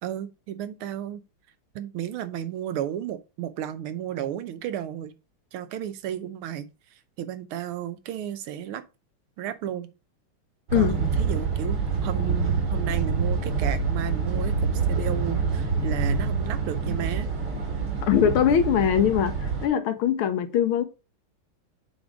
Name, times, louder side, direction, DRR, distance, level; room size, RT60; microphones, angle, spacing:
voice 1, 0.0-1.2 1.7-5.1 5.5-8.8 9.4-9.9 10.7-11.8 12.0-17.3, right 10 dB, 90° right, 1.6 m, -33 dB
sound 1, 10.7-19.7, right 4 dB, 70° right, 2.7 m, -26 dB
voice 2, 18.0-19.3 19.6-20.8, left 9 dB, 85° left, 1.7 m, -21 dB
7.6 x 3.6 x 4.7 m
omnidirectional pair, 2.3 m